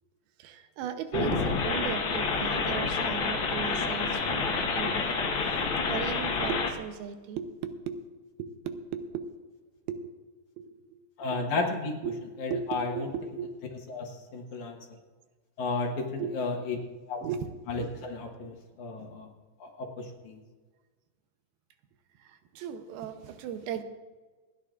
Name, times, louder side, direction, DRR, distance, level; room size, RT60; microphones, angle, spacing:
voice 1, 0.4-5.2 5.5-8.0 8.4-9.3 9.9-10.1 10.6-11.1 11.3-11.4 12.0-12.2 12.5-13.5 16.2-16.4 17.2-17.5 18.0-18.1 18.4-18.5 22.2-23.8, right 8 dB, 85° right, 8 dB, 2.7 m, -37 dB
sound 1, 1.1-6.7, left 4 dB, 80° left, 1.1 m, -28 dB
voice 2, 11.2-12.0 12.4-13.1 13.9-14.8 15.6-16.8 17.1-17.2 17.7-19.3 19.6-20.4, left 3 dB, 60° left, 1 dB, 2.4 m, -33 dB
28.0 x 9.6 x 2.5 m, 1.3 s
omnidirectional pair, 4.3 m